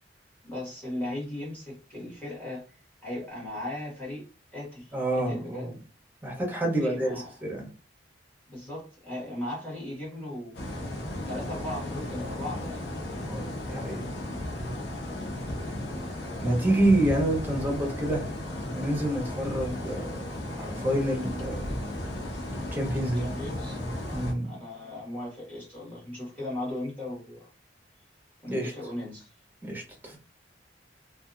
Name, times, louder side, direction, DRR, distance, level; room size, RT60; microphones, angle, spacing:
voice 1, 0.4-2.6 3.0-4.2 4.5-5.7 6.8-7.3 8.5-10.5 11.3-12.8 23.1-23.8 24.4-27.5 28.4-29.3, left 1 dB, 10° left, 1.4 m, -37 dB
voice 2, 4.9-5.7 6.2-7.1 7.4-7.6 13.3-13.4 13.7-14.0 16.4-18.3 18.7-21.7 22.7-23.3 24.1-24.5 28.5-28.7 29.6-30.2, right 1 dB, 10° right, 0.9 m, -28 dB
sound 1, 10.5-24.3, left 1 dB, 70° left, 0.8 m, -35 dB
2.7 x 2.4 x 2.5 m
head